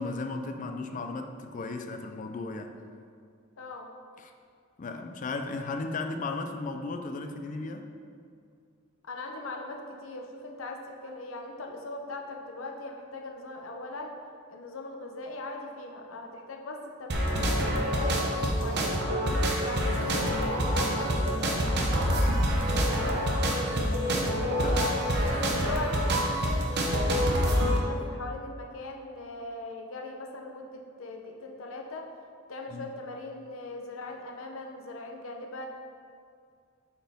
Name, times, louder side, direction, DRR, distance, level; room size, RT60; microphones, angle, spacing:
voice 1, 0.0-2.7 4.2-4.3 4.8-7.9 24.1-25.0 32.7-32.9, left 3 dB, 40° left, 6 dB, 0.4 m, -35 dB
voice 2, 3.6-3.9 9.0-14.1 14.5-19.1 19.6-24.3 25.1-32.1 32.5-35.7, left 2 dB, 70° left, 2 dB, 0.7 m, -40 dB
sound 1, 17.1-27.8, equal, 55° right, 0.8 m, -26 dB
7.4 x 4.4 x 3.5 m, 2.2 s
head